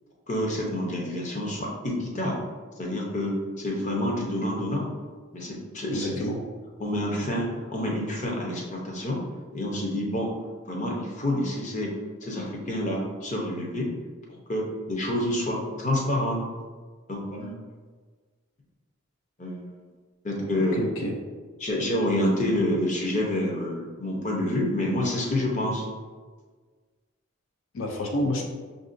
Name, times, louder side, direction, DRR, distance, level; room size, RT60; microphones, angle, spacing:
voice 1, 0.3-2.4 2.8-4.9 5.3-6.2 6.8-9.2 9.5-10.3 10.7-12.0 12.2-13.9 14.3-16.4 17.1-17.5 19.4-19.7 20.2-20.8 21.6-25.8, left 1 dB, 35° left, -1 dB, 0.7 m, -28 dB
voice 2, 5.9-6.4 20.4-20.5 20.7-21.2 27.7-28.4, left 1 dB, 75° left, 1 dB, 0.5 m, -29 dB
5.8 x 2.6 x 2.5 m, 1.5 s
head